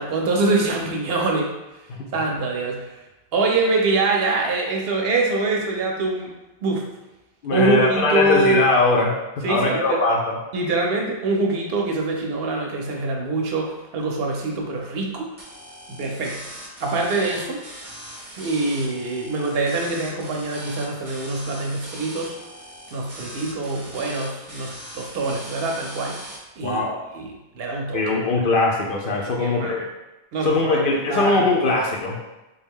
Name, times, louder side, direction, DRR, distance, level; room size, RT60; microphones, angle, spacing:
voice 1, 0.0-1.5 2.1-3.0 3.3-6.3 6.6-6.9 7.5-8.6 9.4-10.0 10.5-15.3 15.9-16.4 16.8-17.6 18.4-22.3 22.9-26.2 26.6-26.8 27.1-28.0 29.4-29.8 30.3-30.8 31.1-31.4, right 2 dB, 70° right, 1 dB, 0.8 m, -24 dB
voice 2, 7.4-10.4 26.6-27.0 27.9-29.9 30.4-32.2, left 2 dB, 60° left, -1 dB, 0.7 m, -21 dB
sound 1, 15.4-26.4, right 1 dB, 20° right, 0.6 m, -40 dB
3.4 x 2.3 x 3.5 m, 1.0 s
omnidirectional pair, 1.1 m